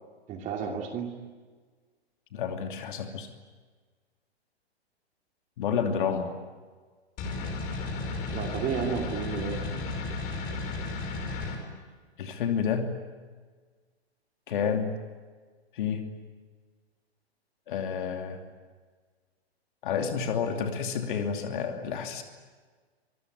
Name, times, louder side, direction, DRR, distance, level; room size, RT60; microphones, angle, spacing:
voice 1, 0.3-1.2 8.3-9.9, right 6 dB, 25° right, 2 dB, 2.7 m, -32 dB
voice 2, 2.3-3.3 5.6-6.3 12.2-13.0 14.5-15.0 15.7-16.0 17.7-18.4 19.8-22.2, left 7 dB, 50° left, 5 dB, 2.9 m, -29 dB
sound 1, 7.2-11.6, left 3 dB, 25° left, 5.5 m, -33 dB
26.0 x 22.0 x 9.5 m, 1.5 s
figure-of-eight pair, 115°, 32 cm